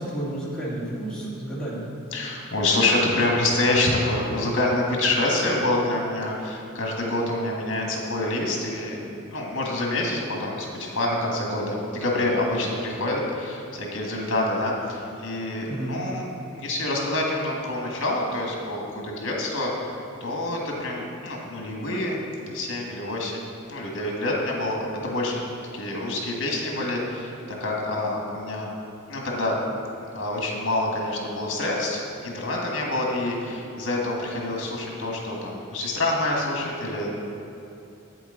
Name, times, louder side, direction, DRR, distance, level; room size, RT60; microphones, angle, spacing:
voice 1, 0.0-1.8 15.7-16.0, right 1 dB, 5° left, -8 dB, 1.8 m, -31 dB
voice 2, 2.1-9.0 9.3-16.3 16.6-25.4 25.7-27.3 27.6-28.7 29.1-29.6 30.1-37.1, left 2 dB, 60° left, -1 dB, 1.6 m, -27 dB
8.4 x 7.8 x 3.9 m, 2.8 s
head